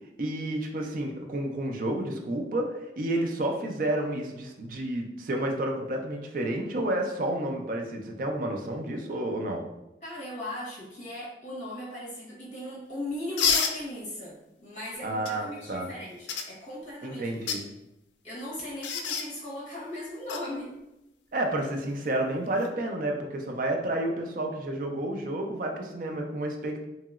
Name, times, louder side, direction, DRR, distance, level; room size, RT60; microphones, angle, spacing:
voice 1, 0.2-9.6 15.0-15.9 17.0-17.6 21.3-26.8, right 1 dB, 50° right, 2 dB, 0.4 m, -30 dB
voice 2, 10.0-17.4 18.2-20.7, left 1 dB, 40° left, -6 dB, 1.1 m, -38 dB
sound 1, 13.4-13.8 15.2-15.3 16.3-16.5 17.3-17.6 18.8-19.3 20.3-20.4 22.5-22.7, left 6 dB, 85° left, 0.3 m, -27 dB
2.9 x 2.8 x 2.4 m, 0.92 s
head